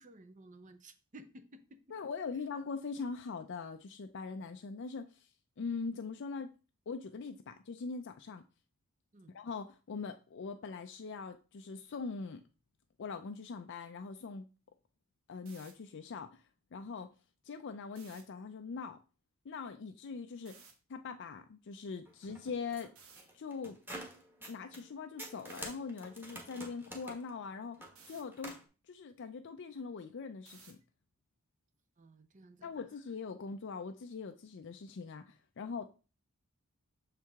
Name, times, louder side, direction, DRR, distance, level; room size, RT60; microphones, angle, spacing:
voice 1, 0.0-1.8 9.1-9.3 32.0-32.7, right 1 dB, 35° right, 0.6 m, -55 dB
voice 2, 1.9-5.3 5.6-6.5 6.9-8.4 9.3-12.4 13.0-14.5 15.3-16.4 16.7-17.1 17.4-19.0 19.4-20.5 20.9-22.9 23.3-23.8 24.5-27.8 28.1-28.6 28.9-30.8 32.6-35.9, left 5 dB, 55° left, 0.4 m, -42 dB
sound 1, 15.3-15.7 17.9-18.2 20.4-20.7 23.0-23.2 25.5-25.7 28.0-28.2 30.5-30.8, right 5 dB, 65° right, 1.2 m, -57 dB
sound 2, 22.0-24.9 25.2-28.6, right 1 dB, 10° right, 1.1 m, -48 dB
6.5 x 4.6 x 3.5 m
head